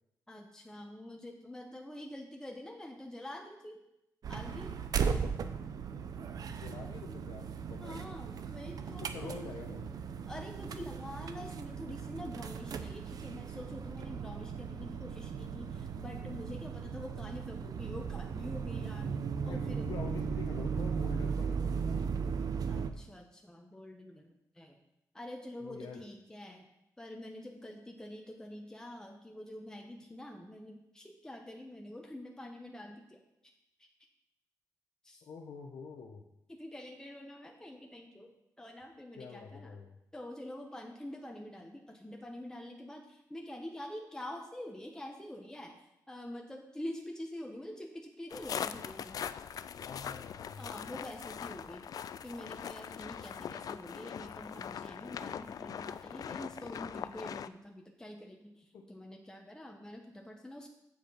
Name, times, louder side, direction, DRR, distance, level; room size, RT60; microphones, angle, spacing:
voice 1, 0.3-3.8 4.3-4.8 7.8-9.6 10.3-19.1 19.5-19.9 22.7-24.8 25.1-26.7 27.0-33.2 35.0-35.2 36.5-38.3 38.6-39.7 40.1-49.2 50.6-51.9 52.2-60.7, left 1 dB, 10° left, 1 dB, 1.0 m, -46 dB
sound 1, 4.2-22.9, right 6 dB, 70° right, 0.6 m, -37 dB
voice 2, 6.5-8.0 8.9-9.9 19.5-22.1 25.6-26.0 35.2-36.2 39.2-40.0 49.8-50.7 58.7-58.8, left 5 dB, 85° left, 4 dB, 0.9 m, -46 dB
sound 2, 48.3-57.5, left 8 dB, 65° left, 0.3 m, -41 dB
7.5 x 7.2 x 5.6 m, 0.86 s
cardioid pair, 100°, 7 cm